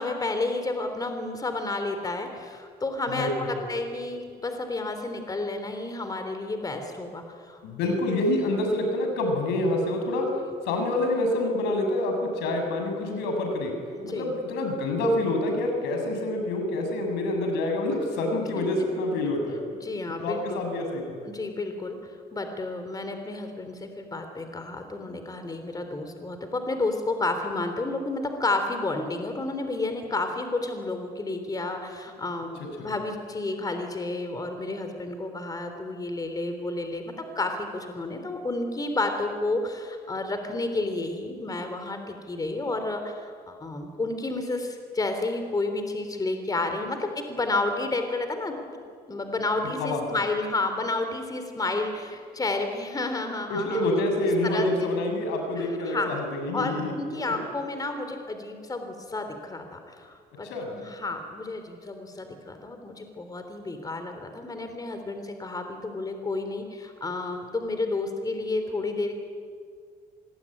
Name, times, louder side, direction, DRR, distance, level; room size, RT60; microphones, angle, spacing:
voice 1, 0.0-7.6 10.3-10.5 14.0-14.3 18.6-18.7 19.8-20.6 21.2-22.0 22.3-48.5 49.1-53.8 54.4-54.9 55.6-56.1 56.5-60.5 60.7-69.2, left 2 dB, 20° left, 6 dB, 3.5 m, -31 dB
voice 2, 3.1-3.5 7.6-10.3 10.7-13.7 14.0-19.6 20.2-21.2 32.8-32.9 49.8-50.0 53.5-56.9 60.4-60.8, left 1 dB, 90° left, 4 dB, 6.9 m, -27 dB
26.0 x 21.0 x 10.0 m, 2.1 s
cardioid pair, 110°, 17 cm